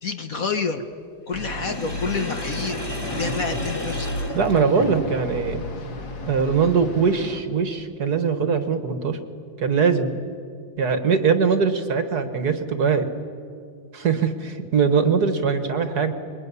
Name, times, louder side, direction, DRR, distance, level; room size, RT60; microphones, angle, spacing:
voice 1, 0.0-0.8 1.3-4.3, left 4 dB, 45° left, 6 dB, 1.5 m, -29 dB
sound 1, 1.3-7.4, left 2 dB, 70° left, 2.7 m, -33 dB
Sink (filling or washing), 1.3-5.3, equal, 10° left, 3.0 m, -34 dB
voice 2, 4.3-5.6 6.3-9.2 9.6-10.1 10.8-13.1 13.9-16.1, right 5 dB, 55° right, 8 dB, 1.9 m, -21 dB
27.0 x 22.5 x 9.7 m, 2.4 s
omnidirectional pair, 2.2 m